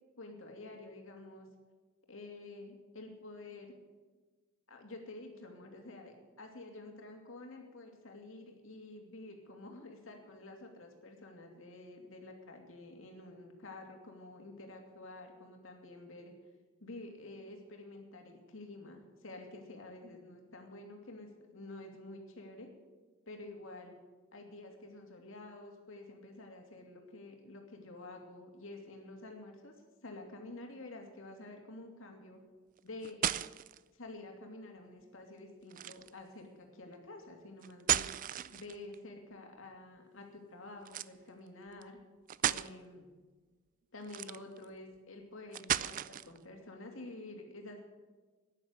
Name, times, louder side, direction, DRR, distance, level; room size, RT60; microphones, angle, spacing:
voice 1, 0.2-1.5 2.1-3.7 4.7-16.3 16.8-22.7 23.3-23.9 24.3-29.7 30.0-32.4 32.8-33.2 34.0-38.1 38.5-42.0 42.4-43.1 43.9-47.8, left 2 dB, 65° left, 2 dB, 2.8 m, -49 dB
sound 1, 32.8-33.8 35.7-36.2 37.6-38.9 40.9-41.1 41.8-41.9 42.3-42.7 44.0-44.6 45.5-46.4, right 11 dB, 40° right, 0.3 m, -34 dB
12.0 x 10.5 x 8.2 m, 1.3 s
head